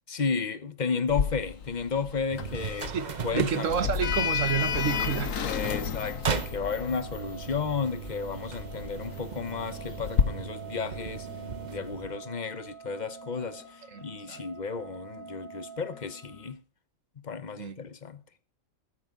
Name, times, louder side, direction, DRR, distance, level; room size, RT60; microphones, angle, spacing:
voice 1, 0.1-2.9 3.2-3.9 5.4-11.3 11.6-16.6 17.2-18.2, left 5 dB, 35° left, 1.0 m, -33 dB
Sliding door, 1.1-10.2, left 7 dB, 70° left, 1.5 m, -32 dB
sound 1, 2.3-12.2, right 6 dB, 40° right, 0.8 m, -37 dB
voice 2, 2.9-5.4 13.9-14.4 17.6-17.8, right 8 dB, 70° right, 1.5 m, -30 dB
sound 2, 4.4-16.5, right 5 dB, 10° left, 7.7 m, -47 dB
14.0 x 13.5 x 3.8 m
omnidirectional pair, 1.4 m